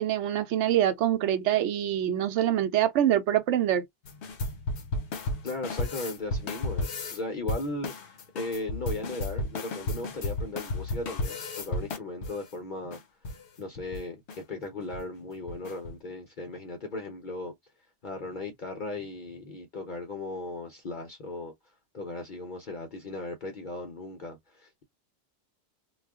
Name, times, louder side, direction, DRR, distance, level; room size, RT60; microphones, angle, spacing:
voice 1, 0.0-3.8, right 11 dB, 90° right, 0.9 m, -25 dB
sound 1, 4.0-7.2 7.5-12.4 12.9-13.0 13.2-13.4 13.8-14.0 14.3-14.4 14.8-15.0 15.5-15.9, left 2 dB, 75° left, 1.1 m, -33 dB
voice 2, 5.4-13.0 13.3-14.2 14.5-17.5 18.0-21.5 21.9-24.8, left 2 dB, 50° left, 0.8 m, -37 dB
2.3 x 2.1 x 3.5 m
omnidirectional pair, 1.2 m